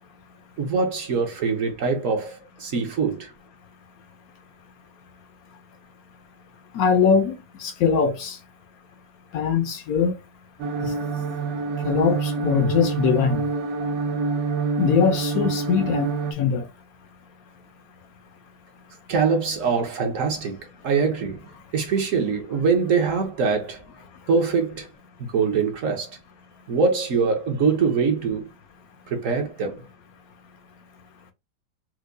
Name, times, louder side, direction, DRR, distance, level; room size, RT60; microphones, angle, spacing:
voice 1, 0.6-3.3 19.1-21.5 21.7-23.8 24.3-24.9 25.3-26.1 26.7-28.5 29.1-29.9, right 5 dB, 60° right, 1.0 m, -23 dB
voice 2, 6.7-7.3 7.6-8.4 9.3-10.2 10.8-10.9 11.8-13.4 14.8-16.7, left 6 dB, 70° left, 1.0 m, -21 dB
sound 1, 10.6-16.3, right 4 dB, 75° right, 0.6 m, -26 dB
4.5 x 2.2 x 2.5 m
omnidirectional pair, 1.8 m